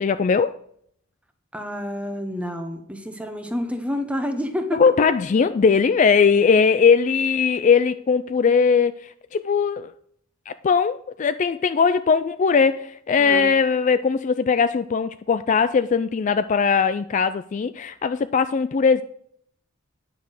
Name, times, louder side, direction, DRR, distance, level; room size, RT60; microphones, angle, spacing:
voice 1, 0.0-0.5 4.7-9.9 10.5-19.0, left 5 dB, 35° left, 0.3 m, -20 dB
voice 2, 1.5-4.8 13.2-13.5, left 1 dB, 5° right, 1.0 m, -29 dB
9.4 x 6.0 x 6.4 m
head